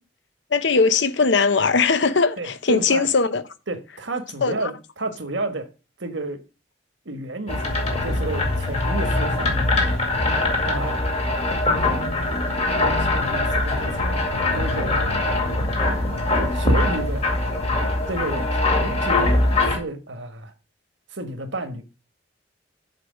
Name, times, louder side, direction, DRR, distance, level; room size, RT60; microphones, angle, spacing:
voice 1, 0.5-3.4 4.4-4.7, left 4 dB, 70° left, 0.8 m, -20 dB
voice 2, 2.4-3.1 3.7-5.7 6.0-6.4 7.0-9.9 10.7-11.5 12.7-14.2 14.5-15.2 16.5-17.2 18.1-18.5 18.8-19.4 19.7-20.5 21.1-21.8, right 2 dB, 70° right, 1.4 m, -31 dB
sound 1, 7.5-19.8, left 2 dB, 30° left, 2.1 m, -22 dB
7.6 x 4.8 x 6.2 m
head